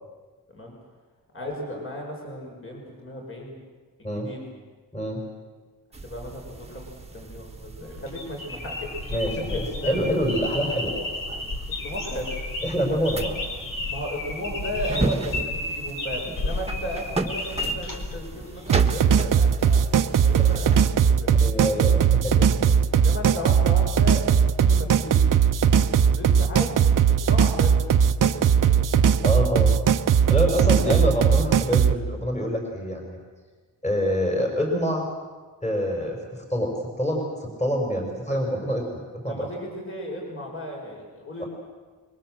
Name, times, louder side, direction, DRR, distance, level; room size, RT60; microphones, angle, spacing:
voice 1, 1.3-3.5 4.0-4.4 6.0-6.9 7.1-10.0 10.9-11.1 11.8-12.3 13.8-21.5 22.9-25.3 25.9-26.9 27.3-29.1 30.4-31.0 39.3-41.5, left 1 dB, 35° left, 0 dB, 5.9 m, -35 dB
sound 1, 5.9-20.9, right 3 dB, 20° right, 1.5 m, -35 dB
sound 2, 7.8-18.7, left 2 dB, 65° left, 4.0 m, -33 dB
voice 2, 9.1-10.9 12.6-13.4 21.4-22.7 29.2-29.8 30.3-33.2 33.8-35.0 35.6-36.7 37.0-39.5 41.4-41.5, equal, 20° left, 1 dB, 5.2 m, -26 dB
sound 3, 18.7-31.9, right 7 dB, 60° right, 0.9 m, -19 dB
26.0 x 23.0 x 7.8 m, 1.4 s
wide cardioid pair, 130°, 35 cm